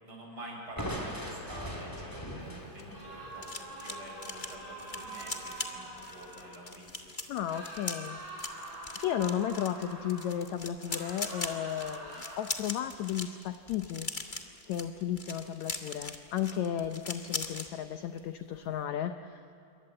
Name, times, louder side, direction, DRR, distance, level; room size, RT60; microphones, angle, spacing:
voice 1, 0.0-7.1, right 1 dB, 35° right, 0 dB, 7.2 m, -47 dB
Crushing, 0.8-4.6, equal, 5° left, 2.9 m, -41 dB
sound 1, 2.5-17.7 18.0-18.3 18.5-18.8, left 3 dB, 45° left, 0.6 m, -41 dB
sound 2, 2.9-6.6 7.5-10.4 10.8-12.4, right 2 dB, 60° right, 9.0 m, -45 dB
voice 2, 7.3-8.2 8.8-14.1 14.7-19.4, left 10 dB, 75° left, 8 dB, 1.7 m, -34 dB
28.0 x 24.0 x 7.8 m, 2.8 s
omnidirectional pair, 4.1 m